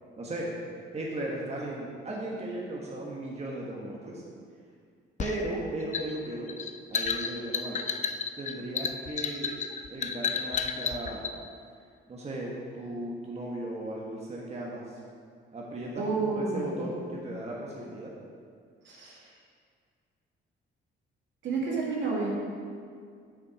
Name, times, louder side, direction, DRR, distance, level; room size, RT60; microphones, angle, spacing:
voice 1, 0.2-0.5 0.9-4.2 5.2-6.5 6.9-7.8 8.4-9.5 9.9-11.3 12.1-15.0 15.5-18.1, right 1 dB, 30° right, -3 dB, 1.4 m, -36 dB
sound 1, 5.2-11.4, left 6 dB, 35° left, 0.5 m, -32 dB
voice 2, 15.9-17.3 18.8-19.2 21.4-22.3, right 3 dB, 70° right, -4 dB, 2.1 m, -31 dB
6.9 x 6.4 x 4.9 m, 2.1 s
cardioid pair, 90°, 20 cm